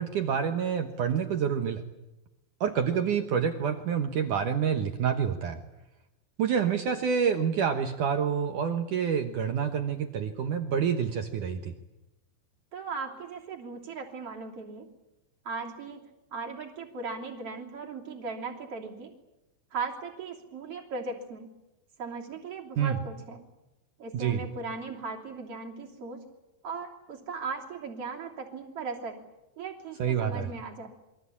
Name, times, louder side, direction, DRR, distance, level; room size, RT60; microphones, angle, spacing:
voice 1, 0.0-1.8 2.6-5.6 6.4-11.7 22.8-23.0 24.1-24.4 30.0-30.5, right 7 dB, 70° right, 6 dB, 1.9 m, -27 dB
voice 2, 12.7-14.9 15.5-16.0 16.3-19.1 19.7-21.5 22.0-23.4 24.0-26.2 26.6-29.2 29.6-30.9, right 4 dB, 35° right, 1 dB, 3.5 m, -38 dB
28.0 x 23.0 x 8.6 m, 0.96 s
omnidirectional pair, 5.3 m